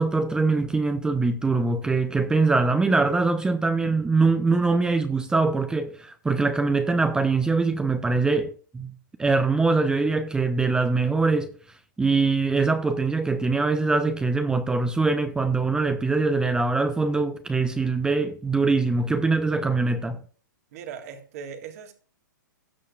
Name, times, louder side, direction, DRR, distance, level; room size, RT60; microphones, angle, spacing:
voice 1, 0.0-8.9 9.2-11.5 12.0-20.2, right 3 dB, 5° right, 0.6 m, -23 dB
voice 2, 20.7-21.9, right 7 dB, 50° right, 1.6 m, -39 dB
18.0 x 6.5 x 2.4 m
hypercardioid pair, 120°, 11 cm